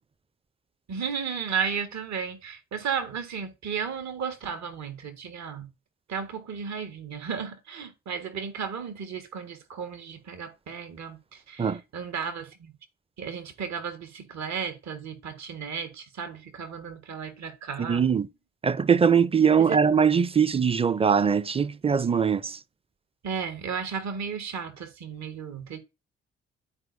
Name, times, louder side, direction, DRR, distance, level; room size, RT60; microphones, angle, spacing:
voice 1, 0.9-5.7 6.1-12.7 13.2-18.0 19.6-19.8 23.2-25.8, right 6 dB, 60° right, 1.4 m, -34 dB
voice 2, 17.8-18.3 18.6-22.6, right 6 dB, 20° right, 0.5 m, -22 dB
12.0 x 4.6 x 2.6 m
hypercardioid pair, 40°, 32 cm